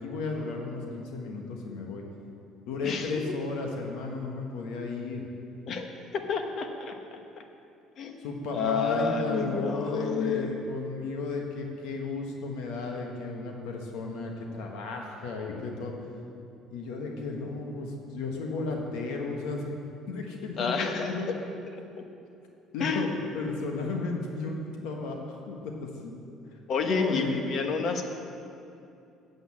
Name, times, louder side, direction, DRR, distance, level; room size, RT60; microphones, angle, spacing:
voice 1, 0.0-2.0 2.7-5.2 8.2-15.9 16.7-19.7 20.1-21.3 22.7-23.1 23.3-26.1 26.9-27.4, left 3 dB, 80° left, 1 dB, 1.4 m, -34 dB
voice 2, 2.8-3.3 5.7-7.2 8.0-8.2 8.5-10.5 20.6-21.2 22.8-23.1 26.7-28.0, left 5 dB, 55° left, 5 dB, 1.1 m, -29 dB
8.0 x 8.0 x 7.5 m, 2.6 s
cardioid pair, 100°, 0 cm